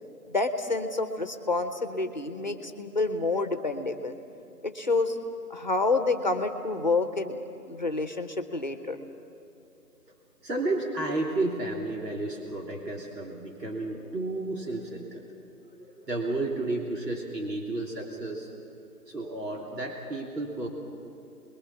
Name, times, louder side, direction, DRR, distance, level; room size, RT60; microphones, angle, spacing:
voice 1, 0.3-4.2 4.6-5.2 5.5-7.4 7.7-9.0, left 3 dB, 30° left, 8 dB, 1.0 m, -28 dB
voice 2, 10.4-15.2 15.7-18.5 19.1-20.7, right 2 dB, 80° right, -1 dB, 3.2 m, -32 dB
28.0 x 21.5 x 6.0 m, 2.9 s
figure-of-eight pair, 170°, 49 cm